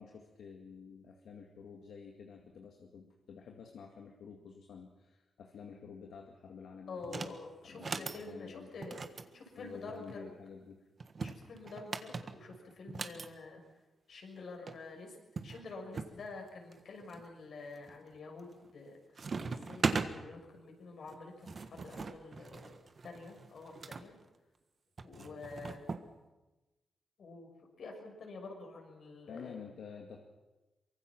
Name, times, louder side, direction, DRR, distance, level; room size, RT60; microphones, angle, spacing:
voice 1, 0.0-7.4 7.6-8.7 9.6-10.8 25.2-25.4 29.3-30.2, left 6 dB, 85° left, 2 dB, 2.0 m, -50 dB
voice 2, 6.9-10.3 11.2-13.6 14.1-15.2 15.4-19.0 19.5-22.7 23.0-24.1 25.0-25.9 27.2-27.5 27.8-29.6, left 3 dB, 65° left, 2 dB, 6.2 m, -48 dB
sound 1, 7.0-7.4 7.7-8.2 8.8-10.2 11.0-13.3 14.4-14.5 14.7-14.8 15.4-16.1 16.7-17.2 17.8-18.1 18.4-18.9 19.2-20.1 21.1-24.0 25.0-26.1, right 4 dB, 45° right, 1.5 m, -39 dB
24.0 x 23.0 x 6.1 m, 1.1 s
wide cardioid pair, 115°, 0 cm